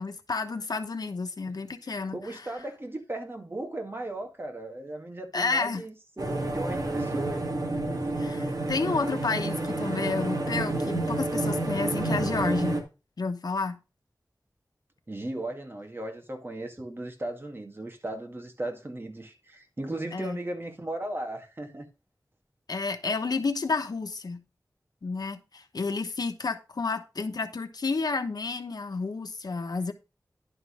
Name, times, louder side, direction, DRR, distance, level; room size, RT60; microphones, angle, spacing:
voice 1, 0.0-2.5 5.3-5.8 8.2-12.8 13.2-13.8 20.1-20.4 22.7-24.4 25.0-29.9, left 4 dB, 80° left, 1.0 m, -31 dB
voice 2, 1.8-7.5 7.9-8.0 15.1-21.9, right 1 dB, 35° right, 2.0 m, -37 dB
sound 1, 6.2-12.8, right 2 dB, 65° right, 2.1 m, -29 dB
11.0 x 3.8 x 6.4 m
wide cardioid pair, 80°, 7 cm